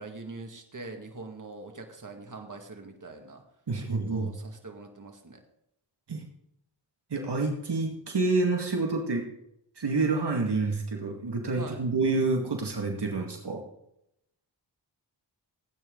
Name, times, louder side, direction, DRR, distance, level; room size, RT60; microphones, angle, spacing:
voice 1, 0.0-3.4 3.7-5.4 11.6-11.9, right 3 dB, 45° right, 3 dB, 2.3 m, -43 dB
voice 2, 3.7-4.3 6.1-6.2 7.1-9.2 9.8-13.6, right 3 dB, 65° right, 2 dB, 2.1 m, -28 dB
18.0 x 9.3 x 4.0 m, 0.78 s
cardioid pair, 60°, 44 cm